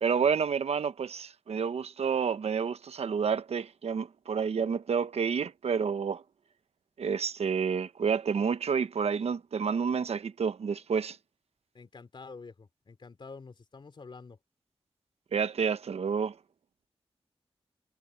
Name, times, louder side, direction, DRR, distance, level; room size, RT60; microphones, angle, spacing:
voice 1, 0.0-6.2 7.0-11.2 15.3-16.4, right 6 dB, 80° right, 0.9 m, -29 dB
voice 2, 11.7-14.4, left 4 dB, 50° left, 3.1 m, -48 dB
wide cardioid pair, 145°, 11 cm